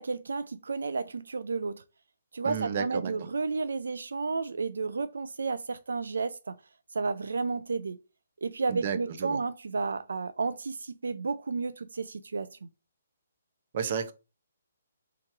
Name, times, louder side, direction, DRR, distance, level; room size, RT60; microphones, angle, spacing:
voice 1, 0.0-1.8 2.3-6.5 6.9-8.0 8.4-12.7, right 4 dB, 85° right, 0.3 m, -32 dB
voice 2, 2.4-3.1 8.7-9.4 13.7-14.1, right 7 dB, 45° right, 0.7 m, -32 dB
3.4 x 2.9 x 4.6 m
hypercardioid pair, 160°, 0 cm